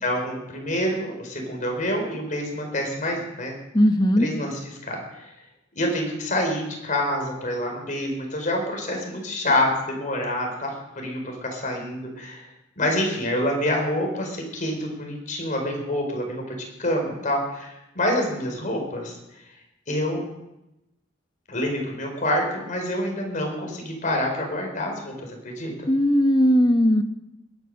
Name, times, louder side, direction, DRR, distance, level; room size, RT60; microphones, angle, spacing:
voice 1, 0.0-3.5 4.2-5.3 5.7-10.7 11.0-12.5 12.8-19.2 19.9-20.3 21.5-25.7, left 1 dB, 45° left, 2 dB, 4.5 m, -27 dB
voice 2, 3.7-4.3 25.9-27.0, equal, 25° left, 7 dB, 1.3 m, -18 dB
21.5 x 9.9 x 6.6 m, 0.89 s
head